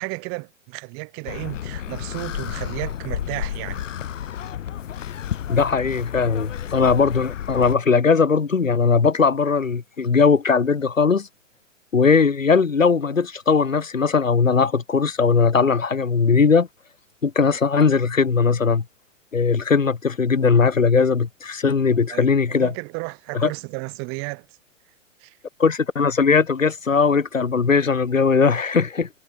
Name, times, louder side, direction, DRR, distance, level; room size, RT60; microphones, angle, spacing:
voice 1, 0.0-3.8 22.1-24.5 25.2-25.3, right 37 dB, 35° right, 1.2 m, -33 dB
sound 1, 1.2-7.7, left 10 dB, 70° left, 0.8 m, -31 dB
voice 2, 5.5-11.3 11.9-16.7 17.2-18.8 19.3-22.7 23.3-23.5 25.6-29.1, left 5 dB, 90° left, 1.1 m, -19 dB
figure-of-eight pair, 105°, 38 cm